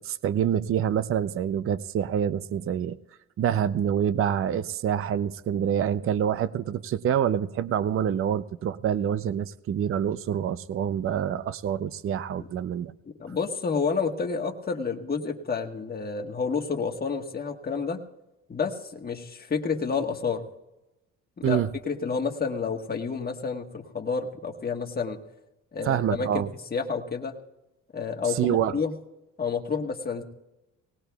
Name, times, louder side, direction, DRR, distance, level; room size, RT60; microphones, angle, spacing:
voice 1, 0.0-3.0 3.4-12.9 21.4-21.7 25.8-26.5 28.3-28.8, right 9 dB, 45° right, 15 dB, 0.5 m, -26 dB
voice 2, 13.0-18.0 18.5-20.4 21.4-25.2 25.7-27.3 27.9-28.9 29.4-30.2, left 5 dB, 30° left, 3 dB, 1.4 m, -30 dB
18.5 x 18.5 x 2.3 m, 0.98 s
cardioid pair, 90°, 30 cm